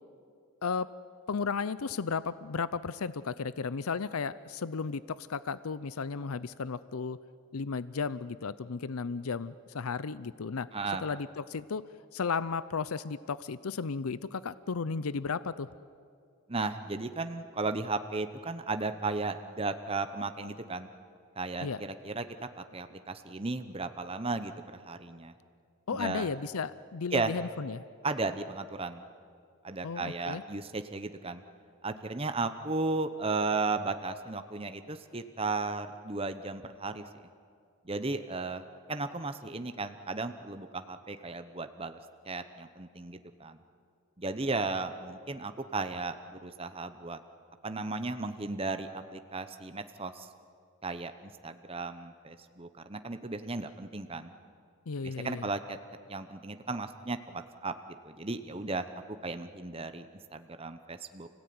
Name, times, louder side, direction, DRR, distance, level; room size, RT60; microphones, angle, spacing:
voice 1, 1.3-7.2 7.5-10.7 11.0-11.8 12.1-15.7 21.6-21.8 25.9-27.8 29.8-30.4 54.9-55.5, left 5 dB, 90° left, 16 dB, 0.6 m, -34 dB
voice 2, 10.7-11.0 16.5-20.9 21.4-25.3 25.9-26.3 27.1-27.3 28.0-29.0 29.6-31.4 31.8-37.1 37.8-42.0 42.3-43.6 44.2-47.2 47.6-50.3 50.8-54.3 55.0-55.8 56.1-58.9 59.2-60.1 60.3-61.3, right 3 dB, 25° right, 9 dB, 0.9 m, -35 dB
29.5 x 17.0 x 9.5 m, 2.3 s
head